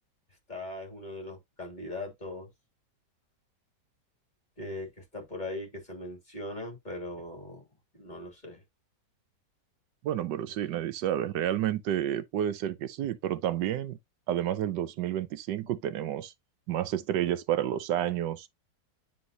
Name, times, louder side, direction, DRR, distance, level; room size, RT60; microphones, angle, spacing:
voice 1, 0.5-2.5 4.6-7.6 7.9-8.6, left 1 dB, 25° left, 2.9 m, -40 dB
voice 2, 10.0-14.0 14.3-16.3 16.7-18.5, right 11 dB, 85° right, 1.3 m, -30 dB
9.6 x 4.0 x 2.8 m
omnidirectional pair, 1.9 m